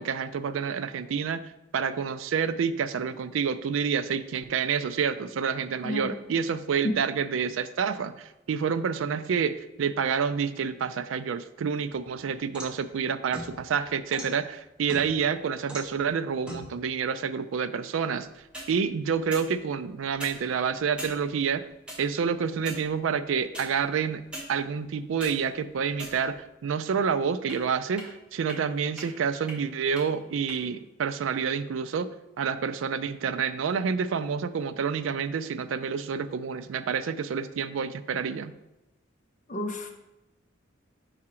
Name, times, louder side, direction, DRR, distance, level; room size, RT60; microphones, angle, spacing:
voice 1, 0.0-1.4 1.7-18.3 18.7-21.7 22.0-24.2 24.5-32.1 32.4-38.5, right 6 dB, 70° right, 12 dB, 0.3 m, -28 dB
voice 2, 5.8-6.1 6.8-7.0 39.5-39.9, left 1 dB, 35° left, 3 dB, 0.6 m, -30 dB
sound 1, 12.5-12.8 13.3-14.3 14.9-15.3 15.7-16.0 16.5-16.7 18.3-18.7 19.3-19.5 20.1-20.4 21.0-21.2 21.9-22.0 22.6-22.8 23.5-23.7 24.3-24.5 24.9-25.3 25.9-26.5 27.5-27.6 28.0-28.1 28.5-28.6 29.0-29.1 29.5-29.6 30.0-30.1 30.5-30.6, equal, 5° right, 0.9 m, -39 dB
4.9 x 4.8 x 4.3 m, 0.94 s
head